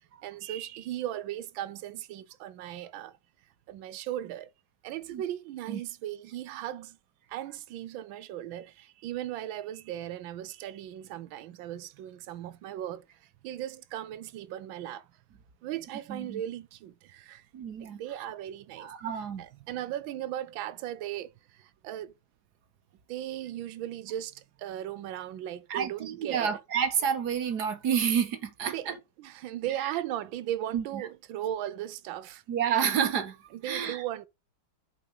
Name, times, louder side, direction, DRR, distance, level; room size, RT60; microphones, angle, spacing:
voice 1, 0.2-3.2 3.7-4.5 4.8-7.0 7.3-15.1 15.6-17.5 17.8-22.1 23.1-26.6 28.6-32.4 33.5-34.3, right 12 dB, 75° right, 1.4 m, -37 dB
voice 2, 16.1-16.4 17.5-18.0 18.8-19.4 25.7-28.9 29.8-29.9 30.7-30.8 32.5-33.4 33.6-34.0, right 8 dB, 60° right, 1.4 m, -29 dB
9.3 x 4.8 x 5.4 m
omnidirectional pair, 2.3 m